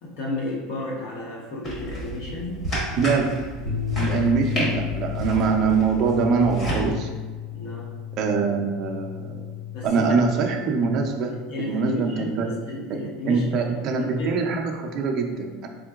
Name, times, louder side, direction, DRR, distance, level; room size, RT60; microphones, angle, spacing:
voice 1, 0.0-2.6 7.5-7.9 9.7-10.0 11.3-14.4, left 2 dB, 50° left, -2 dB, 0.8 m, -33 dB
sound 1, 1.6-6.8, equal, 20° left, 0.9 m, -31 dB
voice 2, 3.0-3.4 3.7-7.1 8.2-9.6 9.8-11.3 11.6-12.5 13.3-15.7, right 5 dB, 35° right, 2 dB, 0.4 m, -23 dB
sound 2, 3.6-9.9, left 10 dB, 65° left, 1.2 m, -32 dB
3.7 x 3.6 x 2.3 m, 1.4 s
supercardioid pair, 175°, 0 cm